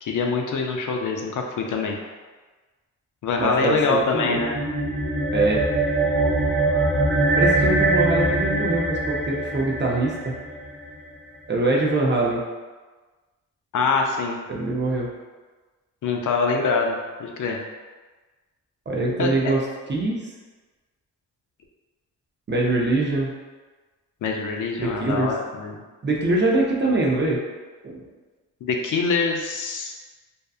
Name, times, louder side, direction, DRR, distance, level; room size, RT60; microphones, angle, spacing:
voice 1, 0.0-2.0 3.2-4.6 13.7-14.4 16.0-17.6 19.2-19.5 24.2-25.8 28.6-29.9, left 4 dB, 60° left, 1 dB, 0.5 m, -24 dB
voice 2, 3.4-4.4 5.3-5.7 7.4-10.3 11.5-12.4 14.5-15.1 18.9-20.3 22.5-23.3 24.8-25.3 26.0-27.4 27.8-28.1, right 2 dB, 30° right, -3 dB, 0.6 m, -23 dB
sound 1, 4.2-10.9, right 2 dB, 10° left, 1.0 m, -23 dB
2.7 x 2.3 x 2.3 m, 1.3 s
cardioid pair, 60°, 35 cm